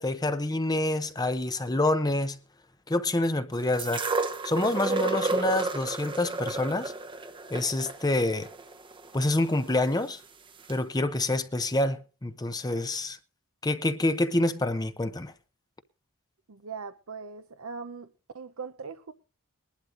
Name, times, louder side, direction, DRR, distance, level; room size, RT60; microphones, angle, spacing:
voice 1, 0.0-2.4 2.9-4.0 4.4-6.9 7.5-8.5 9.1-10.2 10.7-13.2 13.6-15.3, left 2 dB, 20° left, 0.7 m, -27 dB
sound 1, 3.8-9.8 10.7-10.8, right 3 dB, 25° right, 0.8 m, -31 dB
voice 2, 16.5-19.1, right 5 dB, 75° right, 0.7 m, -40 dB
21.5 x 11.5 x 2.6 m
head